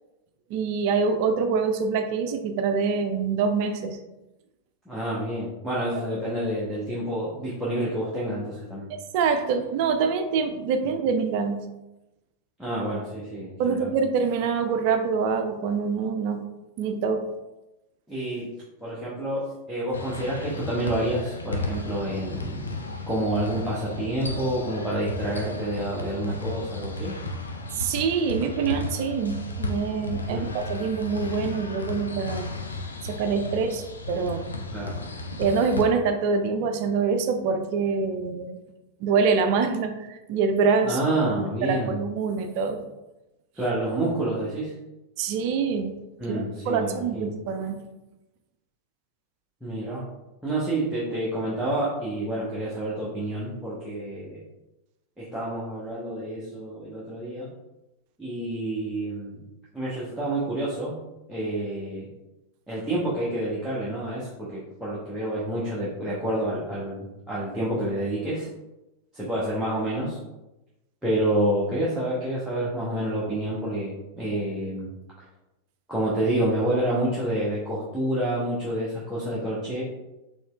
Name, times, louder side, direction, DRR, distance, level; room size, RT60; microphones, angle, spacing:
voice 1, 0.5-4.0 8.9-11.6 13.6-16.4 16.8-17.2 27.8-32.5 33.0-34.5 35.4-38.6 39.0-41.0 41.6-42.8 45.2-45.9 46.3-47.8, right 5 dB, 45° right, 6 dB, 0.4 m, -25 dB
voice 2, 4.9-8.9 12.6-13.9 18.1-18.5 18.8-27.2 30.3-30.5 34.7-34.9 40.8-42.0 43.5-44.7 46.2-47.3 49.6-50.1 50.4-54.4 55.2-57.5 58.2-59.4 59.7-61.0 61.3-62.1 62.7-68.5 69.1-70.2 71.0-74.9 75.9-79.8, right 1 dB, 5° right, -9 dB, 0.8 m, -28 dB
sound 1, 19.9-35.8, left 2 dB, 75° left, 0.4 m, -34 dB
4.2 x 3.1 x 2.3 m, 0.98 s
figure-of-eight pair, 90°, 0 cm